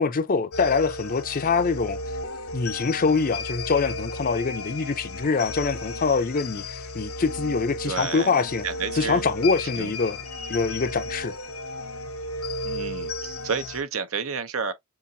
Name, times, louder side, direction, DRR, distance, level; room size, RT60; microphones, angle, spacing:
voice 1, 0.0-2.0 2.5-8.7 9.0-10.2 10.5-11.3, left 4 dB, 40° left, 0.5 m, -24 dB
sound 1, 0.5-13.8, left 2 dB, 80° left, 0.7 m, -34 dB
voice 2, 7.8-9.2 9.8-9.9 12.6-14.7, right 5 dB, 70° right, 0.8 m, -31 dB
7.0 x 2.5 x 2.7 m
head